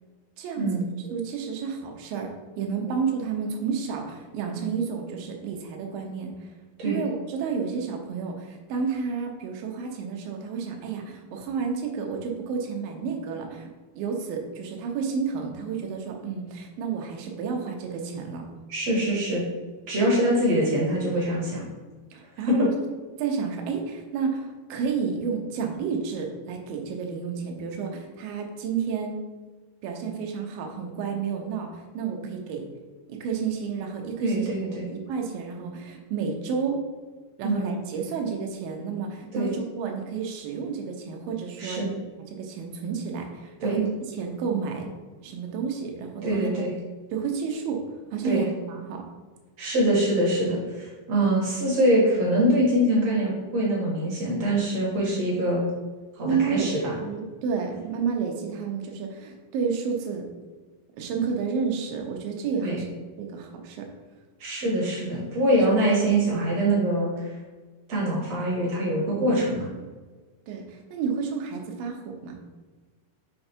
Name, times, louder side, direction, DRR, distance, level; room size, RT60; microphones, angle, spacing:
voice 1, 0.4-0.7 1.0-6.3 6.8-13.7 13.9-18.4 22.1-22.7 23.2-29.2 29.8-32.6 33.1-36.8 37.4-41.9 42.3-43.9 44.1-44.9 45.2-46.5 47.1-47.8 48.1-49.0 56.2-56.7 57.0-60.3 61.0-62.9 63.2-63.9 65.5-65.6 70.5-72.4, right 6 dB, 70° right, 2 dB, 2.4 m, -30 dB
voice 2, 18.7-19.5 19.9-21.6 22.5-22.6 34.2-34.8 37.4-37.7 39.3-39.5 41.6-41.9 43.6-43.8 46.2-46.7 48.2-48.4 49.6-55.6 56.2-57.0 62.6-62.8 64.4-67.3 67.9-69.7, right 1 dB, 55° right, -4 dB, 2.0 m, -24 dB
6.8 x 4.6 x 4.5 m, 1.4 s
omnidirectional pair, 4.7 m